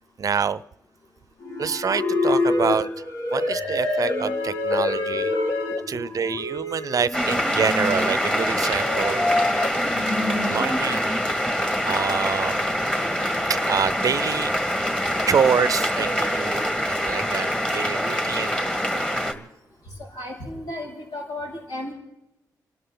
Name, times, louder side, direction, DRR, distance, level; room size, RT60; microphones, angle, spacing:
voice 1, 0.2-0.6 1.6-2.9 3.3-5.3 5.9-9.3 10.3-11.1 11.8-12.6 13.5-14.5 15.3-16.1 16.4-18.5 19.3-19.5, right 6 dB, 55° right, 16 dB, 0.6 m, -26 dB
sound 1, 1.4-10.8, left 2 dB, 60° left, 3.0 m, -26 dB
sound 2, 7.1-19.3, equal, 10° left, 1.9 m, -25 dB
voice 2, 16.0-16.7 18.3-19.0 20.0-21.9, equal, 85° left, -3 dB, 6.9 m, -35 dB
29.5 x 12.5 x 3.9 m, 0.90 s
cardioid pair, 80°, 7 cm